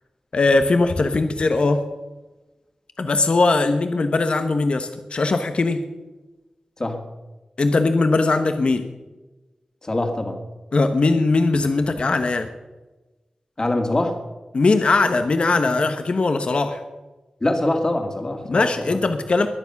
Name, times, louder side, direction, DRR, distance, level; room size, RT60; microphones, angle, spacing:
voice 1, 0.3-1.8 3.0-5.8 7.6-8.8 10.7-12.5 14.5-16.8 18.5-19.5, left 3 dB, 60° left, 8 dB, 1.2 m, -20 dB
voice 2, 9.8-10.4 13.6-14.2 17.4-19.0, left 1 dB, 30° left, 4 dB, 2.4 m, -24 dB
22.0 x 9.9 x 6.0 m, 1.1 s
wide cardioid pair, 95°, 2 cm